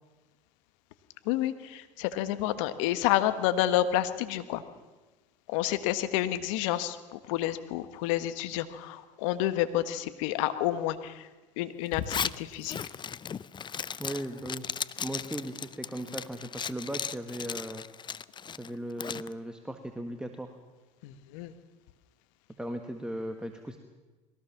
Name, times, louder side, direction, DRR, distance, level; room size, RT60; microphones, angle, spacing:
voice 1, 1.2-4.6 5.5-11.3 11.6-12.8 21.0-21.5, left 13 dB, 75° left, 11 dB, 1.5 m, -29 dB
Zipper (clothing), 11.9-19.3, left 7 dB, 30° left, 0.6 m, -36 dB
voice 2, 14.0-14.6 15.0-17.8 18.6-20.5 22.6-23.8, right 1 dB, 5° right, 5 dB, 1.7 m, -37 dB
22.0 x 17.5 x 7.2 m, 1.2 s
hypercardioid pair, 80°, 16 cm